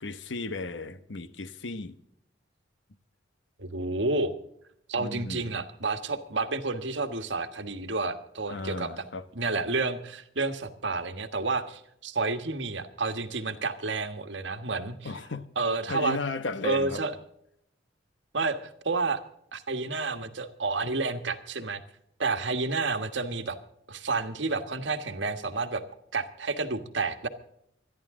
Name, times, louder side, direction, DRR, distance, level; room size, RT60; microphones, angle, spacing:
voice 1, 0.0-2.0 5.0-5.5 8.5-9.2 15.0-15.5 15.9-17.0, left 3 dB, 75° left, 1.0 m, -35 dB
voice 2, 3.6-4.3 4.9-9.0 9.3-15.1 15.6-16.2 16.6-17.1 18.3-19.2 19.5-21.8 22.2-23.6 23.9-25.8 26.1-27.3, right 3 dB, 70° right, 1.5 m, -30 dB
25.5 x 11.0 x 3.7 m
head